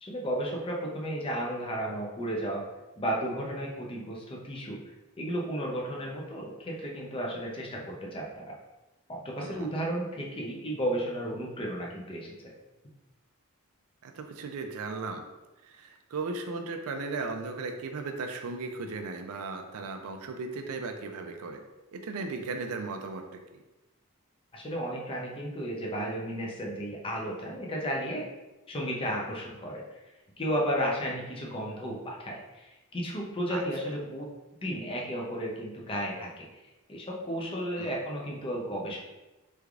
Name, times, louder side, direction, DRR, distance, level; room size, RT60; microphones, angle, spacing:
voice 1, 0.0-2.6 3.0-4.8 5.2-8.5 9.1-12.3 24.5-28.2 28.7-30.0 30.4-34.3 34.6-36.5 36.9-39.0, equal, 25° left, -1 dB, 0.5 m, -33 dB
voice 2, 9.4-9.7 14.0-15.2 15.6-21.6 21.9-23.6 33.5-33.6 37.8-38.0, right 3 dB, 70° right, 4 dB, 0.4 m, -36 dB
3.4 x 3.2 x 2.4 m, 1.1 s
head